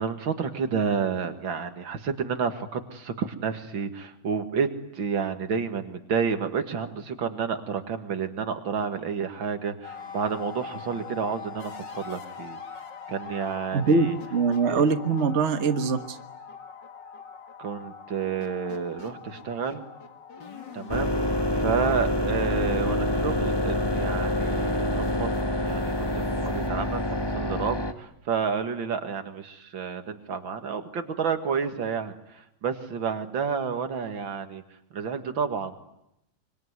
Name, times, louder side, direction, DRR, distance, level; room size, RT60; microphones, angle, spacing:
voice 1, 0.0-4.7 4.9-12.6 13.1-14.2 14.7-14.8 17.6-19.8 20.7-25.3 25.6-34.6 34.9-35.7, right 6 dB, 85° right, 8 dB, 2.6 m, -30 dB
sound 1, 9.8-27.7, left 6 dB, 65° left, 2.8 m, -43 dB
voice 2, 13.7-16.2, right 4 dB, 40° right, 8 dB, 1.6 m, -23 dB
sound 2, 20.9-27.9, left 1 dB, 15° left, 1.2 m, -26 dB
25.0 x 24.0 x 9.6 m, 0.84 s
omnidirectional pair, 2.1 m